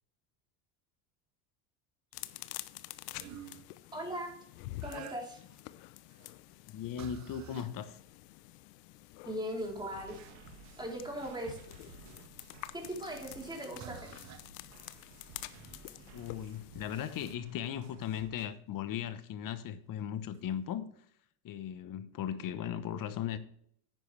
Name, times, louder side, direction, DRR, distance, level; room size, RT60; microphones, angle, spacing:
sound 1, 2.1-17.4, left 16 dB, 70° left, 0.8 m, -49 dB
sound 2, 3.1-3.7 4.8-5.5 6.1-6.4 7.0-7.7 8.6-8.7 9.1-12.3 13.2-13.4 13.8-14.5 17.7-17.8 19.5-19.6 20.3-20.5, right 9 dB, 35° right, 1.0 m, -51 dB
voice 1, 3.9-4.3 4.8-5.4 9.2-10.2 10.8-11.6 12.7-14.2, equal, 10° right, 3.7 m, -39 dB
voice 2, 6.7-8.0 16.1-20.9 21.4-23.4, left 9 dB, 40° left, 1.1 m, -37 dB
sound 3, 9.6-18.5, right 6 dB, 75° right, 1.8 m, -56 dB
10.5 x 9.3 x 3.4 m
supercardioid pair, 110°, 49 cm